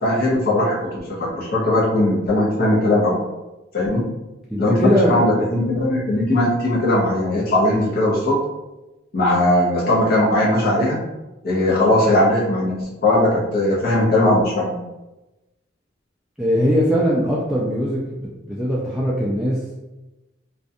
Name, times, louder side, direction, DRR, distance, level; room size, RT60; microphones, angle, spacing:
voice 1, 0.0-3.2 3.7-4.1 4.6-8.4 9.1-11.0 11.4-14.7, left 1 dB, 55° left, -6 dB, 0.7 m, -19 dB
voice 2, 4.5-5.3 16.4-19.8, equal, ahead, -7 dB, 0.3 m, -21 dB
2.4 x 2.2 x 2.6 m, 1.0 s
head